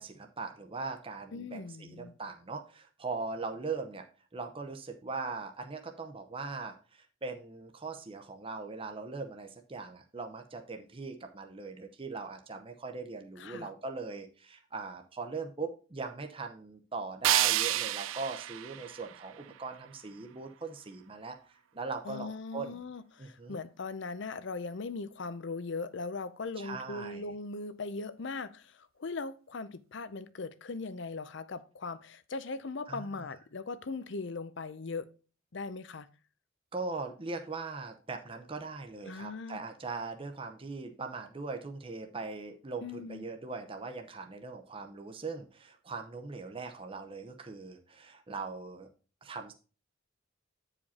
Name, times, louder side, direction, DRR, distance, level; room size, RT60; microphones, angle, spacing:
voice 1, 0.0-4.1 4.3-22.8 23.2-23.6 26.6-27.2 32.9-33.1 36.7-48.9 49.2-49.5, right 4 dB, 25° right, 0.7 m, -40 dB
voice 2, 1.3-2.1 13.4-13.7 22.0-35.1 35.5-36.1 39.1-39.6 42.8-43.2, left 3 dB, 60° left, 0.6 m, -39 dB
sound 1, 17.2-20.2, right 13 dB, 75° right, 0.4 m, -31 dB
8.8 x 5.0 x 4.2 m
head